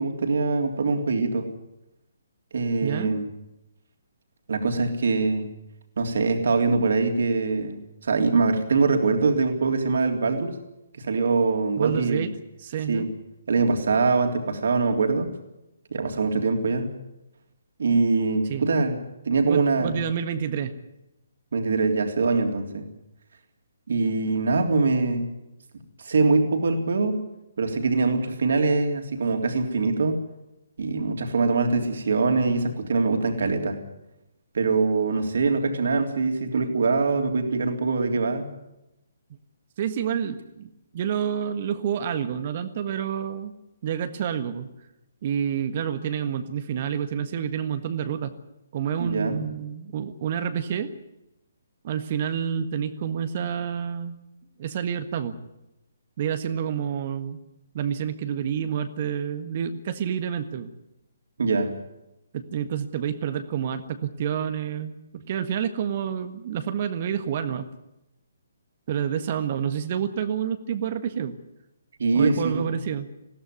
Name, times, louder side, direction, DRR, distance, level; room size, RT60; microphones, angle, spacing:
voice 1, 0.0-1.5 2.5-3.3 4.5-5.5 6.0-10.5 11.0-12.3 12.9-13.1 13.5-15.3 15.9-16.9 17.8-19.0 19.2-20.0 21.5-22.8 23.9-25.3 26.0-27.2 27.6-30.2 30.8-33.8 34.5-38.5 49.0-49.4 61.4-61.7 72.0-72.7, right 4 dB, 55° right, 4 dB, 3.4 m, -23 dB
voice 2, 2.8-3.2 11.8-12.3 12.6-13.1 18.5-18.7 19.5-20.7 39.8-43.5 43.8-44.7 45.2-48.3 48.7-50.9 51.8-54.2 54.6-55.4 56.2-57.4 57.7-60.7 62.3-67.7 68.9-71.4 72.1-73.1, right 8 dB, 40° right, 9 dB, 1.6 m, -28 dB
20.5 x 17.0 x 9.5 m, 0.92 s
figure-of-eight pair, 135°, 0 cm